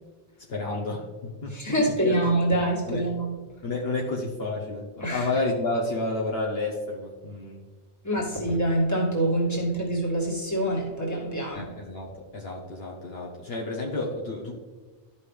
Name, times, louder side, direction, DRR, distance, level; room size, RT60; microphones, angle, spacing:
voice 1, 0.5-1.0 1.4-2.2 2.9-3.0 3.6-7.6 11.5-14.5, left 2 dB, 65° left, -2 dB, 1.3 m, -30 dB
voice 2, 1.5-3.4 5.0-5.3 8.0-11.6, right 1 dB, 15° left, -5 dB, 2.0 m, -25 dB
13.0 x 5.5 x 3.3 m, 1.3 s
omnidirectional pair, 1.1 m